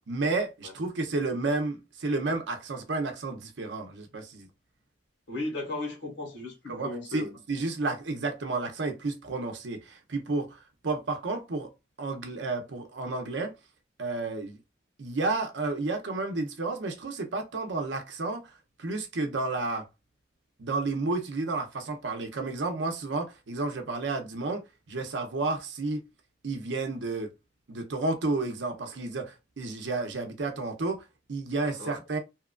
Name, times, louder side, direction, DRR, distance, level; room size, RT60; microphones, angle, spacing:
voice 1, 0.1-4.5 6.7-11.7 12.0-13.5 14.0-14.6 15.0-18.5 18.8-19.9 20.6-26.0 26.4-27.3 27.7-31.0 31.3-32.2, right 3 dB, 90° right, 0.7 m, -31 dB
voice 2, 5.3-7.3 31.6-32.0, left 2 dB, 80° left, 1.5 m, -36 dB
2.9 x 2.4 x 2.2 m
head